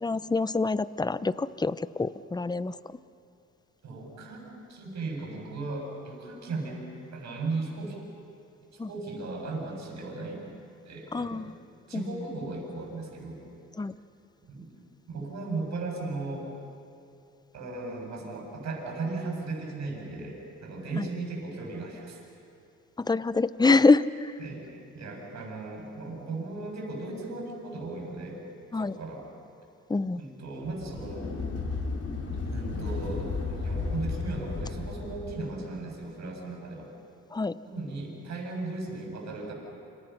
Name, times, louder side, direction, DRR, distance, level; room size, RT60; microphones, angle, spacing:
voice 1, 0.0-3.0 8.8-8.9 11.1-11.5 11.9-12.0 13.8-13.9 21.0-21.1 23.0-24.3 28.7-28.9 29.9-30.2 37.3-37.6, left 3 dB, 15° left, 15 dB, 0.7 m, -26 dB
voice 2, 3.8-6.8 7.1-8.0 8.7-10.5 10.8-11.5 11.9-13.4 14.5-14.7 15.1-16.5 17.5-22.2 24.4-28.4 28.7-29.2 30.2-31.3 32.3-36.9 37.6-39.5, right 3 dB, 65° right, 0 dB, 7.7 m, -36 dB
sound 1, 30.7-35.5, left 3 dB, 50° left, 4.2 m, -33 dB
29.5 x 27.0 x 6.0 m, 2.7 s
cardioid pair, 90°, 30 cm